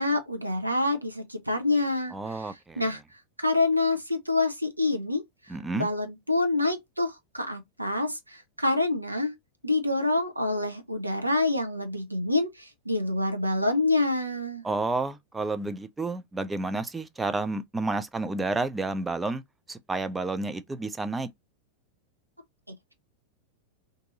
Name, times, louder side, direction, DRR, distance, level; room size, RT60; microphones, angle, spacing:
voice 1, 0.0-3.0 3.4-5.2 5.7-9.3 9.6-14.6, left 2 dB, 85° right, 0.7 m, -27 dB
voice 2, 2.1-2.9 5.5-5.9 14.6-19.4 19.7-21.3, right 3 dB, 10° right, 0.4 m, -30 dB
2.6 x 2.6 x 3.8 m
figure-of-eight pair, 90°, 0 cm